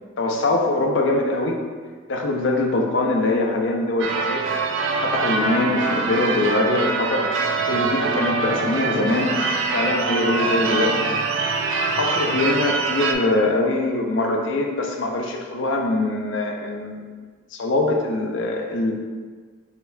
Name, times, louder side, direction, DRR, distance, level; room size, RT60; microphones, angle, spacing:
voice 1, 0.2-1.6 2.1-4.5 5.0-7.3 7.7-9.4 9.7-11.0 11.9-17.1 17.5-18.9, left 2 dB, 65° left, 2 dB, 0.5 m, -23 dB
Church bell / Car / Alarm, 4.0-13.1, right 4 dB, 70° right, 0.4 m, -24 dB
4.4 x 3.9 x 2.2 m, 1.5 s
head